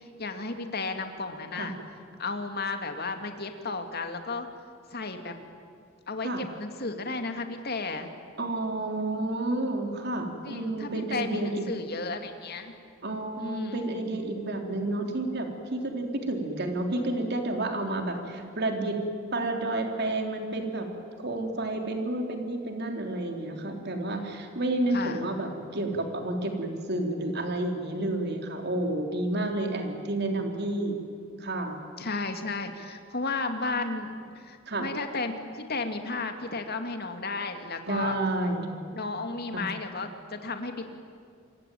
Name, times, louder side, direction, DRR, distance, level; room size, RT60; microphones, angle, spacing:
voice 1, 0.2-1.7 2.2-4.5 4.9-5.3 6.1-8.1 10.4-12.7 13.4-13.8 24.9-25.2 32.0-38.2 38.9-40.8, left 3 dB, 50° left, 6 dB, 2.4 m, -33 dB
voice 2, 8.4-11.7 13.0-19.0 19.3-20.9 21.2-31.0 31.4-31.8 34.7-34.9 37.9-38.8 39.5-39.6, right 2 dB, 55° right, 4 dB, 3.6 m, -30 dB
27.0 x 23.5 x 9.3 m, 2.2 s
head